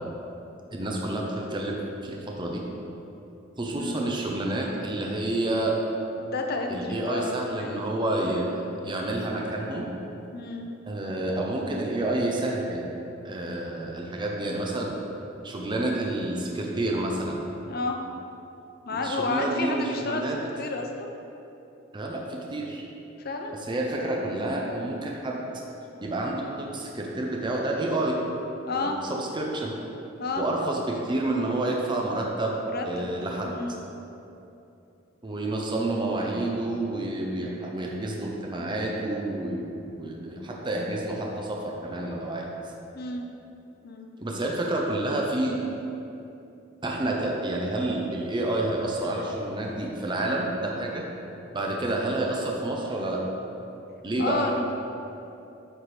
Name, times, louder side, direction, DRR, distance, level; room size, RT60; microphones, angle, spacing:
voice 1, 0.7-2.6 3.6-5.7 6.7-9.9 10.9-12.9 13.2-14.9 15.4-17.4 18.9-20.4 21.9-22.8 23.6-25.4 26.0-28.2 28.7-29.8 30.4-32.5 32.8-33.5 35.2-42.5 44.2-45.6 46.8-51.0 51.5-53.2 54.0-54.4, right 1 dB, 25° right, -1 dB, 0.6 m, -29 dB
voice 2, 3.8-4.1 6.2-7.8 10.3-10.7 17.7-18.0 18.9-20.2 20.6-21.1 23.2-23.5 28.7-29.0 30.2-30.5 32.6-33.1 33.4-33.8 42.9-43.3 43.8-44.1 54.2-54.7, left 3 dB, 55° left, 3 dB, 0.6 m, -31 dB
8.9 x 4.3 x 3.3 m, 2.9 s
head